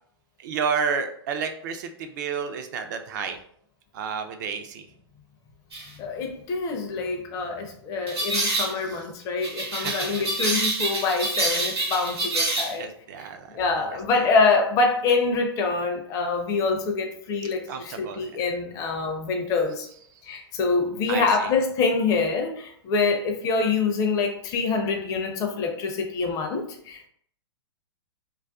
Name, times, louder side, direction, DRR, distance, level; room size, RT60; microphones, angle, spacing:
voice 1, 0.4-3.4 3.9-4.9 8.7-9.0 9.7-10.1 12.8-13.5 14.1-14.2 17.7-18.2 21.1-21.5, right 6 dB, 45° right, 7 dB, 0.3 m, -30 dB
sound 1, 5.7-5.9 8.1-8.7 9.4-12.7, right 2 dB, 70° right, 0.9 m, -27 dB
voice 2, 6.0-12.9 13.2-13.3 13.5-19.9 20.2-27.1, left 4 dB, 25° left, 2 dB, 0.4 m, -25 dB
2.3 x 2.3 x 2.3 m, 0.64 s
figure-of-eight pair, 115°, 14 cm